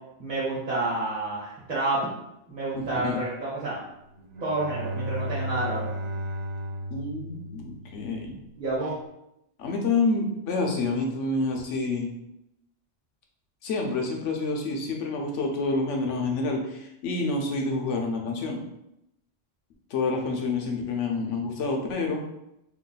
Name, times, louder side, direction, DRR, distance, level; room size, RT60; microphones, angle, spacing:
voice 1, 0.2-2.1 2.5-3.8 4.4-5.9 8.6-8.9, right 2 dB, 45° right, -8 dB, 1.0 m, -29 dB
voice 2, 2.8-3.2 6.9-8.4 9.6-12.1 13.6-18.6 19.9-22.2, left 3 dB, 85° left, 1 dB, 1.0 m, -28 dB
Bowed string instrument, 4.2-8.2, equal, 60° right, 0.4 m, -34 dB
3.1 x 2.3 x 3.9 m, 0.83 s
omnidirectional pair, 1.2 m